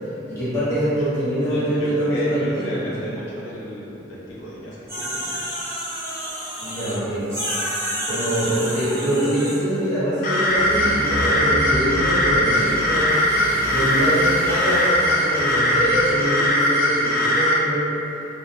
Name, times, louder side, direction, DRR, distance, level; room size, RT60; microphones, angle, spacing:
voice 1, 0.3-3.1 6.6-7.2 8.0-13.2 13.6-17.9, right 1 dB, 15° left, -14 dB, 0.8 m, -24 dB
voice 2, 1.0-5.4 8.6-9.2, equal, 90° left, -8 dB, 0.6 m, -34 dB
sound 1, 4.9-7.0 7.3-9.6, equal, 15° right, 0.7 m, -29 dB
sound 2, 10.2-17.6, left 1 dB, 45° left, 0.3 m, -20 dB
sound 3, 10.5-16.2, equal, 40° right, 1.0 m, -32 dB
2.2 x 2.2 x 2.9 m, 2.9 s
head